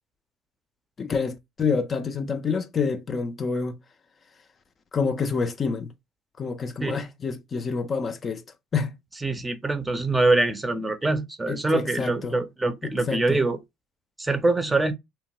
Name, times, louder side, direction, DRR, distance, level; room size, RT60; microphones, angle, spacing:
voice 1, 1.0-3.8 4.9-5.9 6.4-8.4 8.7-8.9 11.5-12.4 12.8-13.4, left 5 dB, 35° left, 0.4 m, -27 dB
voice 2, 9.2-13.6 14.2-14.9, right 2 dB, 15° right, 0.6 m, -24 dB
2.9 x 2.1 x 3.0 m
supercardioid pair, 85°, 0 cm